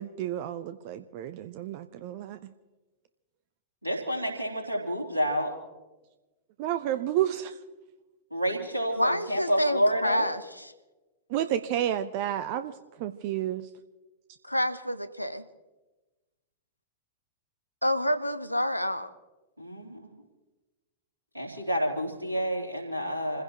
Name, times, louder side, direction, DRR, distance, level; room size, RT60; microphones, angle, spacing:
voice 1, 0.0-2.5 6.6-7.5 11.3-12.7 13.0-13.7, right 11 dB, 45° right, 11 dB, 0.7 m, -30 dB
voice 2, 3.8-5.5 8.3-10.3 19.6-20.1 21.3-23.4, equal, 85° right, 0 dB, 3.3 m, -29 dB
voice 3, 9.0-10.7 14.4-15.4 17.8-19.1, equal, 90° left, 12 dB, 0.8 m, -28 dB
28.0 x 16.0 x 2.9 m, 1.1 s
figure-of-eight pair, 95°, 0 cm